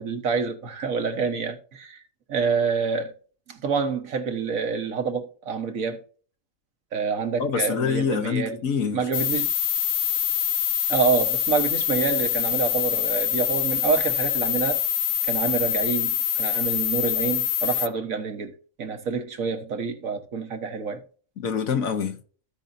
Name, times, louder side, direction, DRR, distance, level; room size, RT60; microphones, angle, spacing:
voice 1, 0.0-2.0 2.3-3.1 3.5-6.0 6.9-8.6 8.9-9.5 10.9-14.8 15.2-21.0, right 5 dB, 80° right, 1.7 m, -27 dB
voice 2, 7.4-9.0 21.4-22.2, left 6 dB, 85° left, 1.6 m, -25 dB
sound 1, 9.1-17.9, left 11 dB, 60° left, 0.5 m, -25 dB
15.5 x 5.2 x 2.7 m
omnidirectional pair, 1.4 m